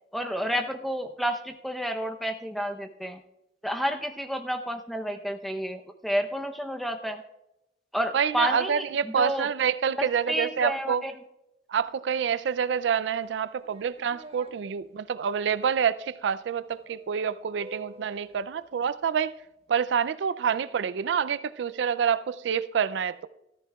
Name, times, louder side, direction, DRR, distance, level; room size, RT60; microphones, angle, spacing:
voice 1, 0.1-3.2 3.6-7.2 7.9-9.5 10.0-11.2, equal, ahead, 0.6 m, -30 dB
voice 2, 8.1-11.0 11.7-19.3 19.7-23.3, right 7 dB, 80° right, 0.4 m, -27 dB
sound 1, 13.2-14.5 16.7-18.3, equal, 35° right, 1.1 m, -50 dB
13.5 x 13.5 x 2.3 m
head